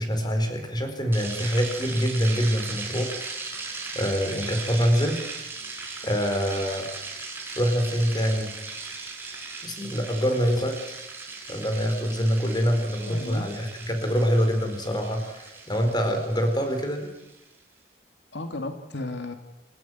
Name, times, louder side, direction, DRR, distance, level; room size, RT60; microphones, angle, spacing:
voice 1, 0.0-3.2 3.9-5.2 6.0-6.9 7.6-8.5 9.6-11.0 11.5-17.1, equal, 25° left, 6 dB, 4.5 m, -25 dB
sound 1, 1.1-17.4, right 3 dB, 10° right, 5.2 m, -38 dB
voice 2, 13.1-13.5 18.3-19.3, left 2 dB, 75° left, 6 dB, 2.2 m, -34 dB
29.5 x 13.5 x 9.4 m, 0.93 s
head